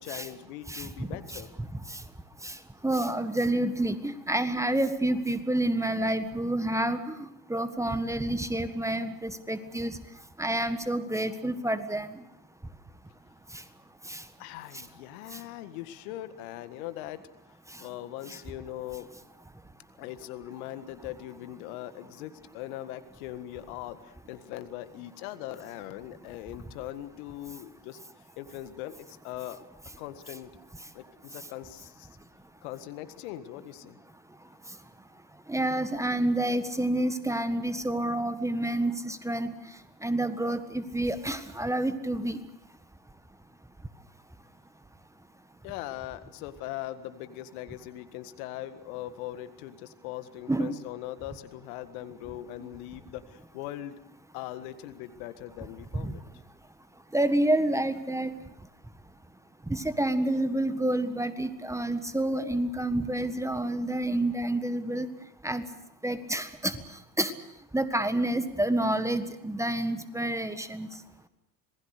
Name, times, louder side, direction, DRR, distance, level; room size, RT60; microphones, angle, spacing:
voice 1, 0.0-1.5 14.4-17.3 17.8-19.1 20.0-28.0 28.4-29.6 30.0-30.5 30.9-32.2 32.6-34.0 45.6-54.0 54.3-56.2, left 14 dB, 60° left, 12 dB, 1.8 m, -40 dB
voice 2, 0.7-1.4 1.9-2.0 2.4-2.6 2.8-10.0 10.4-12.2 14.1-14.2 35.5-39.5 40.0-42.4 50.5-50.8 56.0-56.1 57.1-58.3 59.7-65.1 65.4-65.7 66.0-66.7 67.2-67.3 67.7-70.9, right 1 dB, 5° right, 11 dB, 1.6 m, -28 dB
27.0 x 20.5 x 6.7 m, 0.85 s
hypercardioid pair, 80°, 48 cm